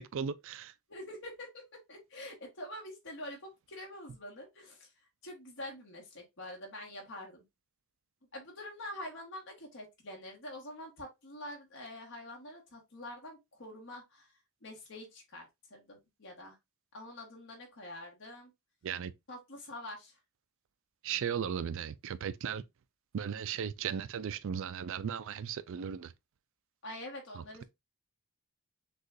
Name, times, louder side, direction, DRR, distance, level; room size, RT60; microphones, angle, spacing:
voice 1, 0.0-0.7 18.8-19.1 21.0-22.6 23.1-26.1, right 7 dB, 60° right, 0.4 m, -36 dB
voice 2, 0.9-4.9 5.2-7.4 8.3-14.3 14.6-16.6 16.9-18.5 19.3-20.2 26.8-27.6, left 1 dB, 60° left, 1.5 m, -46 dB
6.4 x 2.4 x 2.5 m
head